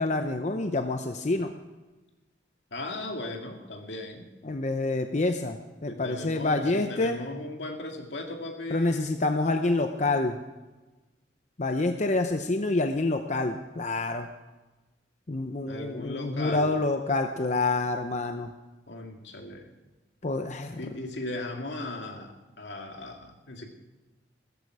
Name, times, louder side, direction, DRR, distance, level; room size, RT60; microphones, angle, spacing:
voice 1, 0.0-1.5 4.4-7.2 8.7-10.4 11.6-14.3 15.3-18.5 20.2-21.0, left 2 dB, 40° left, 6 dB, 0.7 m, -27 dB
voice 2, 2.7-4.3 5.9-9.2 15.7-16.8 18.9-19.7 20.8-23.7, left 2 dB, 80° left, 3 dB, 2.2 m, -37 dB
16.5 x 14.0 x 4.8 m, 1.1 s
head